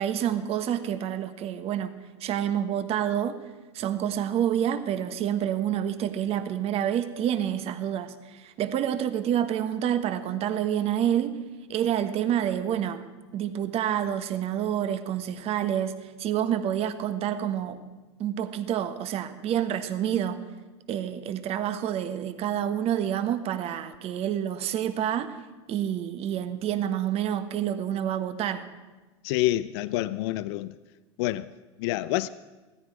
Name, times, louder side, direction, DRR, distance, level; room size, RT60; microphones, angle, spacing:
voice 1, 0.0-1.9 2.2-3.4 3.7-11.4 11.7-13.0 13.3-17.8 18.2-20.4 20.9-25.4 25.7-28.6, right 10 dB, 45° right, 10 dB, 1.2 m, -28 dB
voice 2, 29.2-30.7 31.2-31.5 31.8-32.3, left 16 dB, 65° left, 16 dB, 0.4 m, -27 dB
16.5 x 14.0 x 4.9 m, 1.2 s
hypercardioid pair, 100°, 15 cm